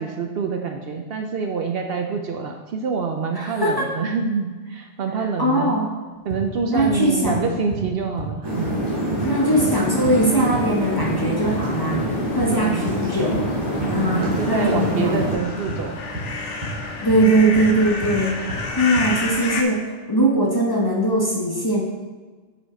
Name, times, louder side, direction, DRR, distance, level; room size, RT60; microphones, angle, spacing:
voice 1, 0.0-5.8 6.3-8.8 12.5-12.9 13.8-16.0, right 5 dB, 60° right, 4 dB, 0.7 m, -26 dB
voice 2, 3.4-3.9 5.4-5.9 6.7-7.5 9.2-12.1 12.3-13.5 13.9-15.3 17.0-21.8, right 1 dB, 20° left, -2 dB, 0.8 m, -21 dB
sound 1, 6.3-12.6 12.9-19.2, right 1 dB, 35° right, 1.2 m, -31 dB
sound 2, 8.4-15.3, equal, 20° right, 2.3 m, -26 dB
sound 3, 9.2-19.6, left 3 dB, 75° left, 1.1 m, -32 dB
6.2 x 5.1 x 4.3 m, 1.4 s
omnidirectional pair, 1.2 m